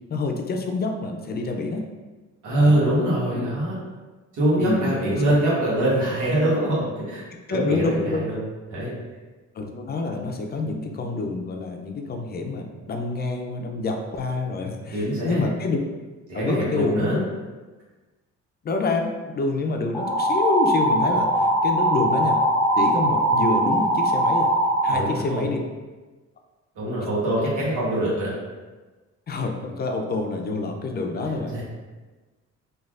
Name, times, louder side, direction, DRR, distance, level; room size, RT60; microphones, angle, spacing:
voice 1, 0.1-1.9 2.6-2.8 3.3-3.5 4.6-5.2 7.5-8.2 9.6-15.8 16.3-17.2 18.6-22.4 22.8-24.5 24.8-25.6 29.3-31.6, left 3 dB, 35° left, 3 dB, 0.4 m, -27 dB
voice 2, 2.4-3.8 4.3-7.2 7.5-8.4 8.7-8.9 14.9-15.4 16.3-17.2 24.9-25.5 26.7-28.3 31.3-31.6, right 1 dB, 90° right, -7 dB, 1.2 m, -23 dB
sound 1, 19.9-25.0, right 1 dB, 5° left, 0.8 m, -21 dB
3.2 x 2.4 x 2.4 m, 1.3 s
cardioid pair, 90°, 30 cm